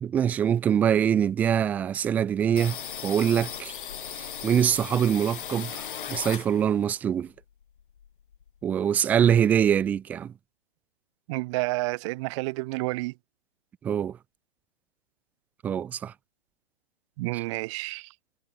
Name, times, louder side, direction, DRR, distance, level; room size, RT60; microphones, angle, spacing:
voice 1, 0.0-2.8 3.0-3.7 4.2-5.8 6.1-7.3 8.6-10.3 13.8-14.1 15.6-16.1, right 9 dB, 5° right, 0.5 m, -24 dB
sound 1, 2.6-6.9 7.2-8.6 8.9-9.0 9.3-10.0, left 8 dB, 55° left, 3.3 m, -38 dB
voice 2, 11.3-13.1 17.2-18.1, right 23 dB, 30° right, 2.9 m, -30 dB
figure-of-eight pair, 135°, 32 cm